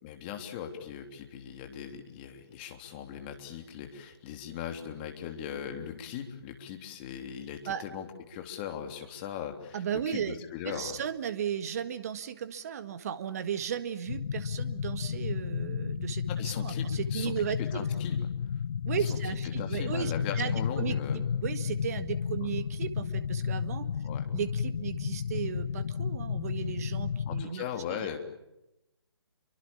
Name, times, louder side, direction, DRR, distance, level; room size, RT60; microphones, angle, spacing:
voice 1, 0.0-11.0 16.3-18.3 19.0-19.2 19.6-21.2 24.0-24.2 27.3-28.2, left 9 dB, 25° left, 5 dB, 3.3 m, -39 dB
voice 2, 9.7-10.4 10.6-17.8 18.9-23.9 24.3-28.2, right 8 dB, 35° right, 10 dB, 1.8 m, -35 dB
sound 1, 14.1-27.5, left 7 dB, 45° left, 1.0 m, -32 dB
29.5 x 24.5 x 7.2 m, 0.90 s
figure-of-eight pair, 145°, 14 cm